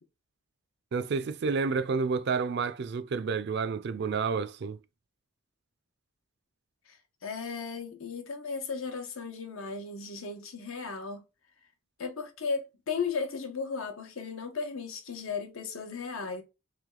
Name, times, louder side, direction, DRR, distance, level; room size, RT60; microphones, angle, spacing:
voice 1, 0.9-4.8, right 5 dB, 50° right, 0.4 m, -30 dB
voice 2, 7.2-11.2 12.0-16.4, left 5 dB, 80° left, 0.9 m, -35 dB
3.4 x 3.1 x 3.7 m
head